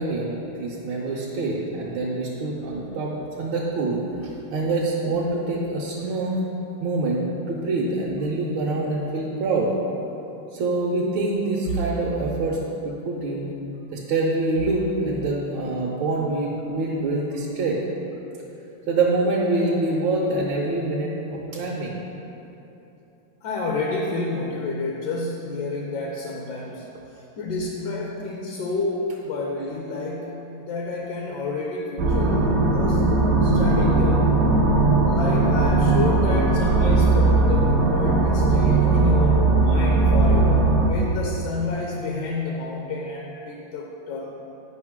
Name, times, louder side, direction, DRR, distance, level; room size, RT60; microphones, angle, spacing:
voice 1, 0.0-6.4 6.8-7.2 7.5-9.7 10.5-12.6 12.8-13.5 13.9-17.8 18.9-22.0, right 2 dB, 75° right, -4 dB, 1.5 m, -25 dB
voice 2, 23.4-26.9 27.1-33.0 33.4-34.2 35.1-44.3, left 2 dB, 70° left, 0 dB, 1.2 m, -29 dB
sound 1, 32.0-40.9, right 3 dB, 60° right, 1.0 m, -19 dB
9.2 x 5.5 x 3.6 m, 3.0 s
omnidirectional pair, 2.2 m